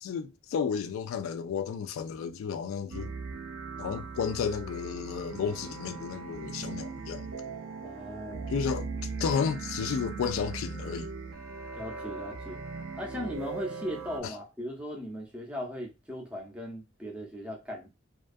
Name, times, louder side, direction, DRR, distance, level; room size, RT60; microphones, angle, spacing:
voice 1, 0.0-3.1 3.8-7.3 8.5-8.9 9.2-11.1 14.2-14.3, left 6 dB, 85° left, 0.3 m, -32 dB
sound 1, 2.9-14.2, right 4 dB, 85° right, 0.4 m, -39 dB
voice 2, 7.8-8.5 11.7-12.6 12.9-17.9, equal, 5° right, 0.6 m, -38 dB
2.4 x 2.2 x 2.5 m
head